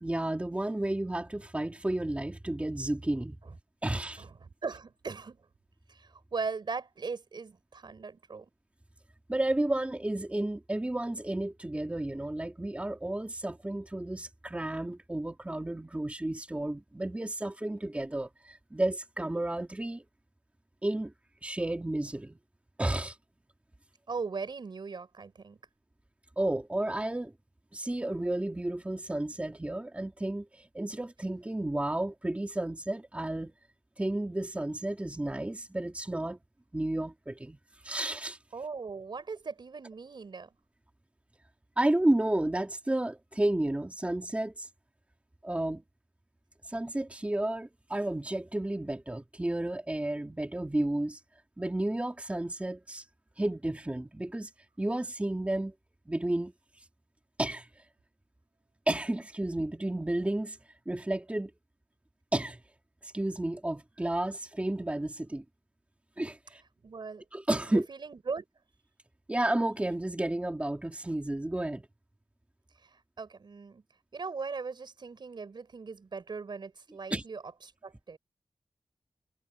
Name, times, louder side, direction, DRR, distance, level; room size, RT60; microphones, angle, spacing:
voice 1, 0.0-3.4 3.8-4.2 9.3-20.0 20.8-21.1 21.4-22.4 22.8-23.2 26.4-27.3 27.7-33.5 34.0-36.4 36.7-37.6 37.8-38.4 41.8-44.7 45.4-45.8 46.6-51.2 51.6-53.0 53.4-54.5 54.8-55.7 56.1-56.5 57.4-57.7 58.9-60.6 60.9-61.5 62.3-62.6 63.0-65.4 66.2-66.6 67.3-67.9 69.3-71.9 77.1-77.2, right 1 dB, 15° right, 2.5 m, -32 dB
voice 2, 4.2-5.5 5.9-8.5 24.1-25.6 38.5-40.5 66.8-67.2 67.7-68.5 72.8-73.8 74.1-77.4 77.8-78.2, right 4 dB, 65° right, 5.3 m, -39 dB
wide cardioid pair, 120°, 9 cm